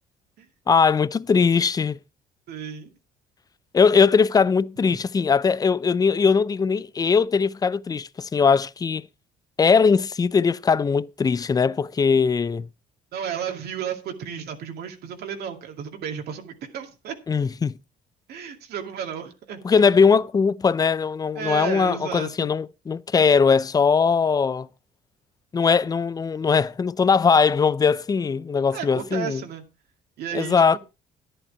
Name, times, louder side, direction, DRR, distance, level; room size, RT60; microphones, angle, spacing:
voice 1, 0.7-2.0 3.7-9.0 9.6-12.7 17.3-17.8 19.6-24.7 25.5-29.4 30.3-30.8, left 5 dB, 20° left, 0.5 m, -20 dB
voice 2, 2.5-2.9 13.1-17.1 18.3-19.6 21.4-22.5 28.7-29.6 30.2-30.8, right 8 dB, 70° right, 2.4 m, -33 dB
11.0 x 11.0 x 4.4 m
cardioid pair, 110°, 17 cm